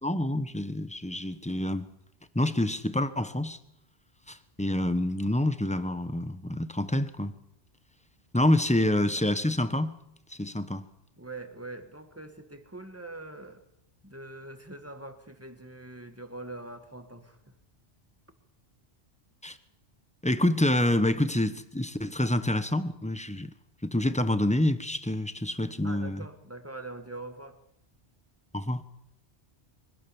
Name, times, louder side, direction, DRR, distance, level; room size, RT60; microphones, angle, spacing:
voice 1, 0.0-1.9 2.3-3.6 4.3-7.3 8.3-9.9 10.3-10.8 19.4-19.6 20.2-23.5 23.8-26.2 28.5-28.8, left 1 dB, 5° left, 1.1 m, -27 dB
voice 2, 11.2-13.6 14.0-17.5 25.8-27.6, right 2 dB, 10° right, 1.9 m, -43 dB
24.5 x 17.5 x 7.2 m
omnidirectional pair, 1.1 m